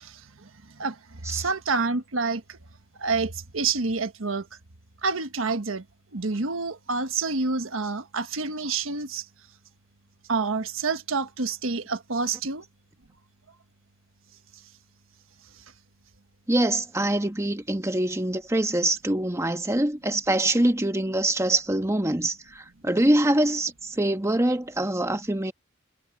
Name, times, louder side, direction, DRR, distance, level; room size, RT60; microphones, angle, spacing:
voice 1, 0.0-2.6 3.0-4.5 5.0-5.8 6.1-9.3 10.3-12.6, right 4 dB, 85° right, 1.3 m, -28 dB
voice 2, 16.5-25.5, right 1 dB, 15° right, 1.2 m, -24 dB
head